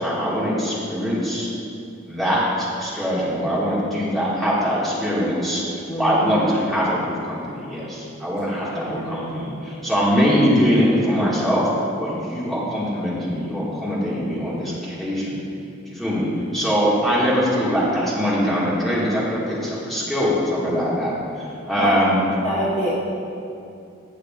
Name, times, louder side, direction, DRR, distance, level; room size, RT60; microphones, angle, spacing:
voice 1, 0.0-1.5 2.1-11.6 12.0-15.4 15.9-16.3 16.5-22.2, equal, ahead, -9 dB, 2.0 m, -22 dB
voice 2, 5.9-6.2 8.7-9.4 21.8-22.0 22.4-22.9, equal, 35° left, -7 dB, 1.1 m, -27 dB
16.0 x 6.5 x 2.5 m, 2.6 s
head